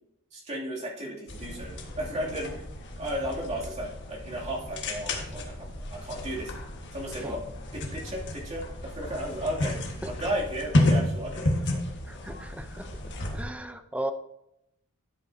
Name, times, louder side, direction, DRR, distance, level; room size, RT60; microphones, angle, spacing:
voice 1, 0.3-2.6 3.0-6.5 6.9-7.4 7.7-11.8, equal, 30° right, -4 dB, 2.7 m, -34 dB
sound 1, 1.3-13.4, left 1 dB, 55° left, 1.6 m, -32 dB
voice 2, 12.1-12.9 13.3-14.1, right 1 dB, 5° right, 8 dB, 0.6 m, -36 dB
12.5 x 7.9 x 2.8 m, 0.80 s
head